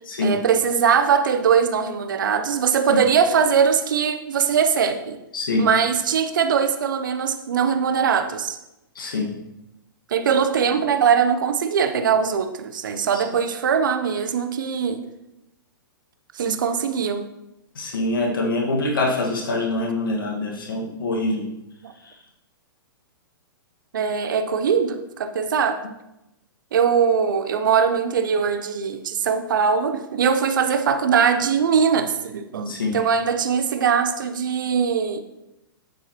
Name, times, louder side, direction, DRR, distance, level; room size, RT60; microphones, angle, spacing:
voice 1, 0.2-5.2 5.6-8.6 10.1-15.1 16.3-17.3 23.9-25.8 26.7-35.2, right 6 dB, 60° right, 8 dB, 0.9 m, -21 dB
voice 2, 5.3-5.7 9.0-9.3 13.1-13.2 17.8-21.5 32.7-33.0, left 2 dB, 70° left, 0 dB, 1.8 m, -24 dB
9.4 x 8.0 x 3.0 m, 0.92 s
figure-of-eight pair, 110°, 12 cm